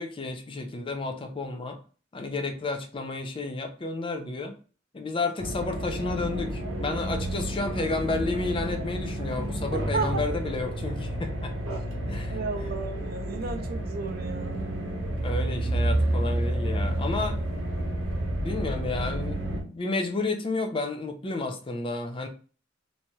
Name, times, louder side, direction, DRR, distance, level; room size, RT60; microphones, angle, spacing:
voice 1, 0.0-1.8 2.1-4.6 4.9-11.5 12.1-12.7 15.2-17.4 18.4-22.3, left 3 dB, 25° left, 0.4 m, -31 dB
sound 1, 5.4-19.6, right 1 dB, 80° right, 0.8 m, -30 dB
voice 2, 9.7-10.2 11.6-11.8 12.3-14.7, right 4 dB, 50° right, 0.5 m, -33 dB
3.1 x 2.7 x 2.2 m
head